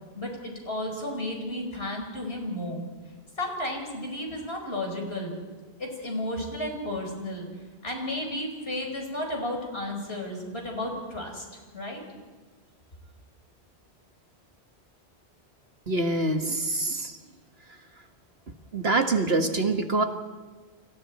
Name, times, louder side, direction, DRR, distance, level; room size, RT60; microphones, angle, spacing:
voice 1, 0.2-2.8 3.4-5.3 5.8-7.5 7.8-11.4 11.7-12.0, left 1 dB, 70° left, 1 dB, 5.4 m, -33 dB
voice 2, 15.9-17.1 18.7-20.0, right 2 dB, 70° right, 5 dB, 2.1 m, -25 dB
29.5 x 25.5 x 4.3 m, 1.3 s
omnidirectional pair, 1.1 m